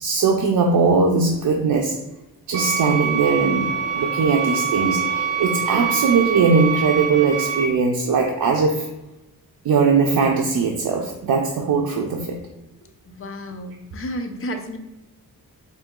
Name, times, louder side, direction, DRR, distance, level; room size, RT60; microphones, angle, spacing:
voice 1, 0.0-2.0 2.5-8.9 9.6-12.4, right 4 dB, 85° right, 1 dB, 0.5 m, -20 dB
sound 1, 2.5-7.6, right 7 dB, 45° right, 0.9 m, -25 dB
voice 2, 13.0-14.8, equal, 40° left, 5 dB, 0.5 m, -31 dB
3.8 x 2.7 x 3.6 m, 0.97 s
wide cardioid pair, 135°, 35 cm